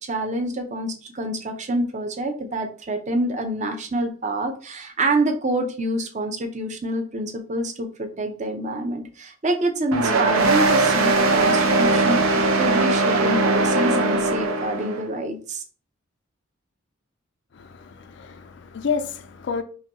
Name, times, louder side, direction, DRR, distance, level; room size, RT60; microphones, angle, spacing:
voice 1, 0.0-15.6, right 1 dB, 35° right, 0.6 m, -27 dB
sound 1, 9.9-15.0, right 2 dB, 85° right, 0.7 m, -20 dB
voice 2, 17.5-19.6, left 5 dB, 55° left, 0.4 m, -30 dB
5.5 x 2.3 x 2.9 m
head